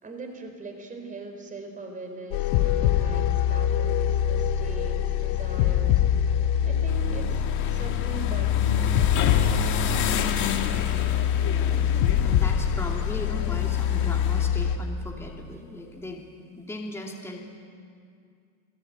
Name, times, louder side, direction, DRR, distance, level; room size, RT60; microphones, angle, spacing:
voice 1, 0.0-6.0 6.6-9.0, right 3 dB, 20° right, 5 dB, 4.1 m, -41 dB
sound 1, 2.3-14.8, left 9 dB, 80° left, 1.8 m, -24 dB
sound 2, 6.9-14.5, left 7 dB, 50° left, 2.3 m, -32 dB
voice 2, 11.4-11.9 12.2-16.2 16.6-17.4, left 1 dB, 5° left, -1 dB, 2.8 m, -38 dB
27.5 x 18.5 x 9.0 m, 2.3 s
cardioid pair, 145°, 37 cm